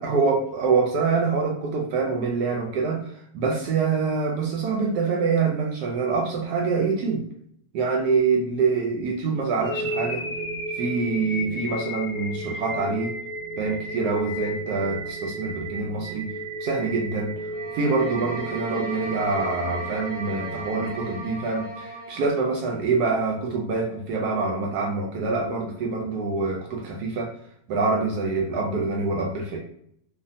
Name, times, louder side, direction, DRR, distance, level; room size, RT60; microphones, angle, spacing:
voice 1, 0.0-7.2 7.7-10.2 10.7-13.1 13.6-16.3 16.6-27.3 27.7-29.6, right 4 dB, 75° right, 0 dB, 1.0 m, -25 dB
sound 1, 9.6-21.7, right 1 dB, 20° left, 0.8 m, -33 dB
sound 2, 17.5-22.4, right 2 dB, 65° left, 0.8 m, -37 dB
3.2 x 2.2 x 2.5 m, 0.69 s
omnidirectional pair, 1.9 m